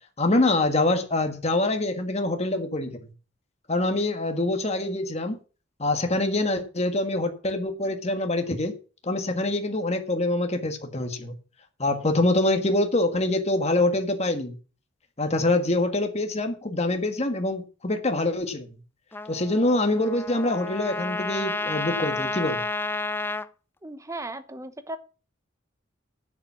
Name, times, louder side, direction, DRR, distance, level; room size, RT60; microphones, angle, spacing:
voice 1, 0.2-3.0 3.7-5.4 5.8-8.7 9.0-11.3 11.8-14.6 15.2-18.7 19.3-22.6, left 2 dB, 35° left, 1.6 m, -25 dB
Trumpet, 19.1-23.5, left 2 dB, 10° left, 0.4 m, -31 dB
voice 2, 23.8-25.0, right 2 dB, 15° right, 0.9 m, -36 dB
10.0 x 7.4 x 6.1 m
head